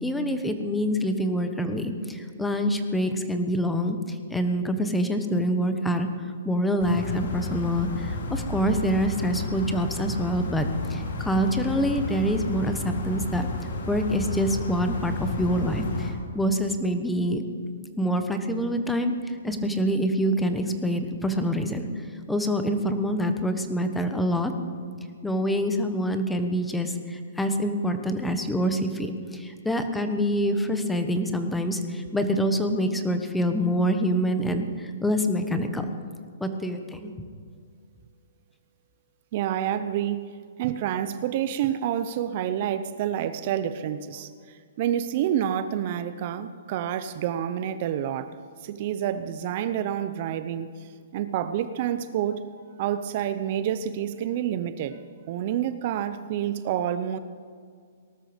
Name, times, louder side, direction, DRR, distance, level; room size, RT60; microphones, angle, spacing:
voice 1, 0.0-6.1 6.4-13.5 13.9-17.5 18.0-21.9 22.3-24.5 25.2-35.8 36.4-37.1, equal, 5° left, 7 dB, 1.1 m, -26 dB
sound 1, 6.8-16.1, left 2 dB, 70° left, 3.1 m, -32 dB
voice 2, 39.3-40.2 40.6-48.3 48.6-50.7 51.1-52.4 52.8-55.0 55.3-57.2, right 10 dB, 45° right, 12 dB, 0.7 m, -28 dB
18.5 x 12.5 x 5.2 m, 2.1 s
hypercardioid pair, 145°, 0 cm